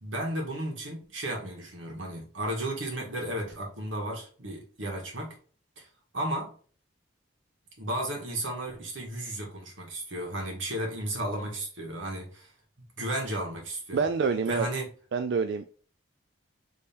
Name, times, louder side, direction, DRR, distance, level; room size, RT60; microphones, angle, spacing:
voice 1, 0.0-5.4 5.8-5.9 6.1-6.5 7.8-12.5 12.8-14.0 14.5-14.9, right 1 dB, 85° right, 1.6 m, -34 dB
voice 2, 13.9-14.7 15.1-15.7, right 5 dB, 60° right, 0.3 m, -27 dB
4.3 x 3.2 x 3.4 m
head